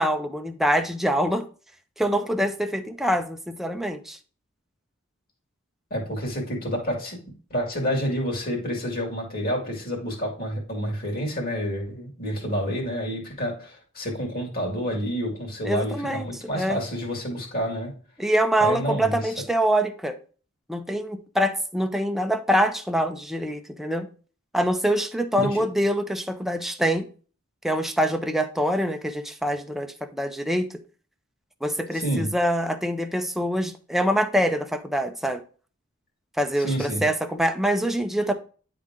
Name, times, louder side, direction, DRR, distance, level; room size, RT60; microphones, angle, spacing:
voice 1, 0.0-1.4 2.0-4.2 15.6-16.3 16.5-16.8 18.2-20.2 20.7-24.1 24.5-27.0 27.6-30.7 31.6-35.4 36.4-38.3, equal, ahead, 0.5 m, -25 dB
voice 2, 5.9-7.2 7.5-17.9 18.6-19.3 25.4-25.6 31.9-32.3 36.6-37.0, equal, 45° left, 2.4 m, -29 dB
9.7 x 3.8 x 3.7 m
head